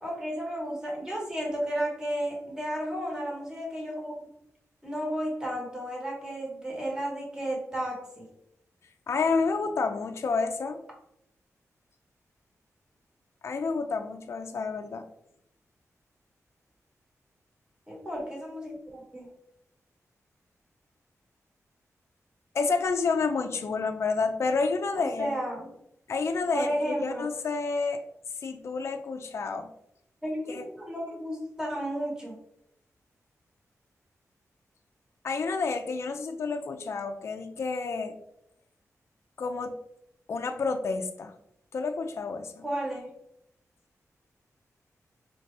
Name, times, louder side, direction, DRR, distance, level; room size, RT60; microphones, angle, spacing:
voice 1, 0.0-4.1 4.8-8.2 17.9-19.3 25.0-25.7 26.5-27.2 30.2-32.4 42.6-43.1, equal, 10° right, -2 dB, 1.3 m, -33 dB
voice 2, 9.1-10.8 13.4-15.1 22.5-25.3 26.1-28.0 28.4-29.7 30.5-30.6 35.2-38.2 39.4-39.8 40.3-41.3 41.7-42.6, left 4 dB, 50° left, 5 dB, 0.3 m, -29 dB
4.3 x 2.7 x 3.2 m, 0.79 s
wide cardioid pair, 125°, 6 cm